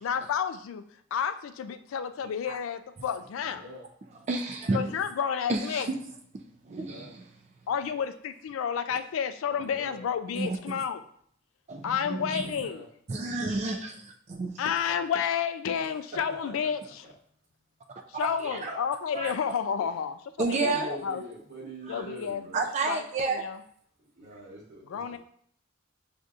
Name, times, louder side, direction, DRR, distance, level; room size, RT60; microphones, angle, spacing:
voice 1, 0.0-0.8 1.1-3.6 4.7-5.9 7.7-11.0 11.8-12.8 14.6-17.1 18.1-21.2 21.9-22.4 22.9-23.6 24.9-25.2, left 7 dB, 90° left, 10 dB, 0.3 m, -31 dB
voice 2, 3.4-3.8 6.7-7.1 9.4-10.0 12.4-12.8 16.3-16.7 18.6-18.8 20.6-22.6 24.1-25.2, right 1 dB, 50° right, -8 dB, 1.0 m, -43 dB
voice 3, 4.3-4.9 5.5-5.8 6.6-7.2 10.3-10.8 11.7-12.5 13.1-14.6 18.2-18.7 19.1-19.3 20.4-20.9 21.9-22.1 22.5-23.4, right 3 dB, 35° right, 4 dB, 0.3 m, -31 dB
6.5 x 2.6 x 2.4 m, 0.63 s
head